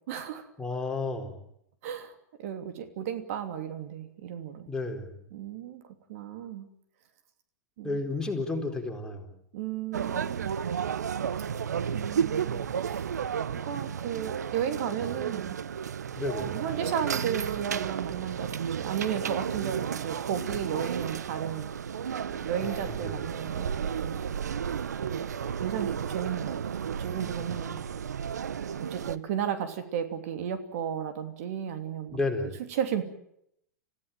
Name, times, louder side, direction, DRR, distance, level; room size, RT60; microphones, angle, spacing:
voice 1, 0.1-0.5 1.8-4.7 5.3-5.8 6.1-6.7 7.8-8.0 9.5-10.6 11.9-13.1 13.5-15.6 16.4-21.7 22.1-24.2 25.1-25.3 25.6-26.6 27.0-27.8 28.9-32.2 32.7-33.0, right 9 dB, 60° right, 8 dB, 2.9 m, -34 dB
voice 2, 0.6-1.4 4.7-5.2 7.8-9.4 16.2-16.6 22.6-23.2 27.4-27.5 32.1-32.6, left 3 dB, 10° left, 2 dB, 4.4 m, -32 dB
sound 1, 9.9-29.2, right 7 dB, 80° right, 0.9 m, -33 dB
27.0 x 16.0 x 9.2 m, 0.75 s
hypercardioid pair, 110°, 9 cm